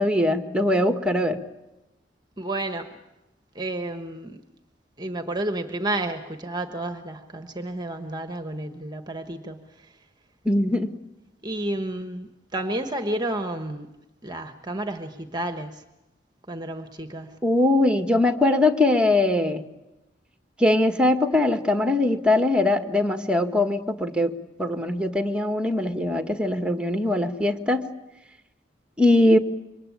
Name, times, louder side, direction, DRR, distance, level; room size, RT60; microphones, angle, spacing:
voice 1, 0.0-1.4 10.4-10.9 17.4-19.6 20.6-24.3 24.6-27.9 29.0-29.4, left 2 dB, 5° right, 7 dB, 1.7 m, -21 dB
voice 2, 2.4-2.9 3.5-4.4 5.0-9.7 11.4-13.9 14.2-15.8 16.5-17.4, right 1 dB, 25° right, 7 dB, 1.3 m, -31 dB
27.0 x 24.0 x 8.6 m, 0.98 s
head